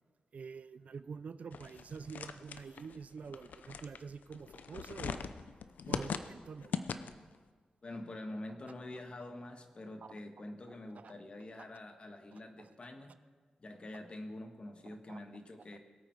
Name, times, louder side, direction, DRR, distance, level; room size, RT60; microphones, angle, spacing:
voice 1, 0.3-5.3 5.9-6.7 11.0-11.1 15.1-15.2, right 5 dB, 60° right, 14 dB, 0.4 m, -47 dB
sound 1, 1.5-7.4, left 6 dB, 85° left, 0.6 m, -41 dB
voice 2, 7.8-13.1 13.6-15.8, left 1 dB, 40° left, 5 dB, 1.5 m, -46 dB
21.5 x 9.0 x 4.7 m, 1.6 s
wide cardioid pair, 90°, 3 cm